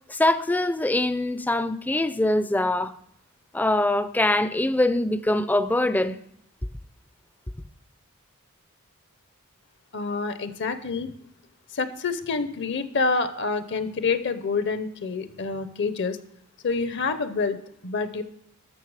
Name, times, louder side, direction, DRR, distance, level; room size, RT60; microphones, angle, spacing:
voice 1, 0.1-2.9 3.5-6.2, left 1 dB, 10° left, 0.4 m, -23 dB
voice 2, 9.9-11.1 11.7-16.2 16.6-17.6 17.8-18.2, left 4 dB, 55° left, 0.6 m, -27 dB
12.5 x 6.8 x 4.7 m
head